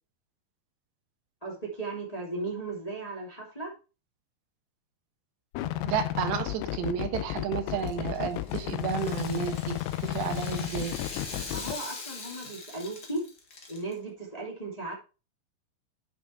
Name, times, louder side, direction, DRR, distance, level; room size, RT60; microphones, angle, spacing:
voice 1, 1.4-3.7 11.5-13.2 13.7-14.9, right 2 dB, 10° left, -3 dB, 2.2 m, -36 dB
sound 1, 5.5-11.8, left 14 dB, 80° left, 2.9 m, -33 dB
voice 2, 5.9-10.9, right 9 dB, 80° right, 7 dB, 3.4 m, -32 dB
Rattle (instrument), 7.7-13.9, left 3 dB, 55° left, 1.1 m, -43 dB
9.4 x 6.0 x 4.6 m, 0.31 s
omnidirectional pair, 5.0 m